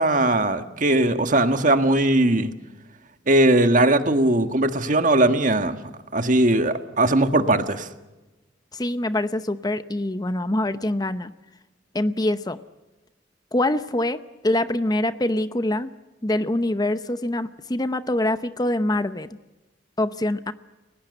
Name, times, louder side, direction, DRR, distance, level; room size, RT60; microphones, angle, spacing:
voice 1, 0.0-2.5 3.3-5.8 6.1-7.9, right 1 dB, 45° right, 8 dB, 1.6 m, -19 dB
voice 2, 8.7-11.3 11.9-12.6 13.5-15.9 16.2-19.3 20.0-20.5, left 1 dB, 20° left, 12 dB, 0.7 m, -24 dB
29.5 x 17.5 x 7.9 m, 1.1 s
head